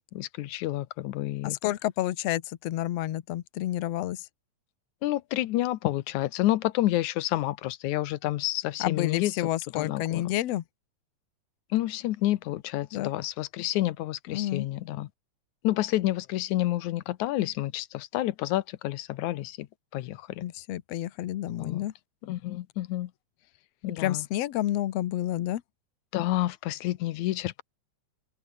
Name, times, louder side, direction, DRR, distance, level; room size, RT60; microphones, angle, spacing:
voice 1, 0.1-1.6 5.0-9.3 9.7-10.3 11.7-15.1 15.6-19.7 19.9-20.4 21.6-21.9 22.2-23.1 23.8-24.2 26.1-27.6, left 15 dB, 90° left, 2.3 m, -29 dB
voice 2, 1.4-4.3 8.8-10.6 12.9-13.1 14.3-14.7 20.4-21.9 24.0-25.6, left 14 dB, 65° left, 2.0 m, -30 dB
open air
omnidirectional pair, 3.4 m